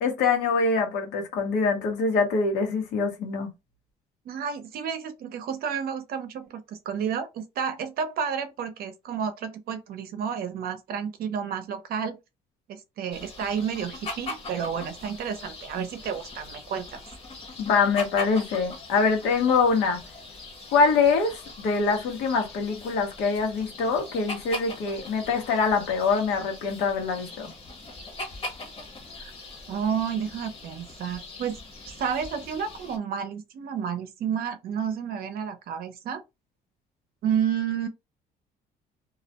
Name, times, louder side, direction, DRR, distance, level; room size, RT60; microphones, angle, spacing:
voice 1, 0.0-3.5 17.6-20.0 20.7-27.5, left 4 dB, 85° left, 0.9 m, -24 dB
voice 2, 4.3-12.2 12.7-17.0 29.2-29.3 29.7-31.6 31.8-36.2 37.2-37.9, right 7 dB, 65° right, 0.6 m, -31 dB
sound 1, 13.1-33.0, left 2 dB, 35° left, 0.9 m, -41 dB
2.4 x 2.1 x 2.8 m
cardioid pair, 110°, 17 cm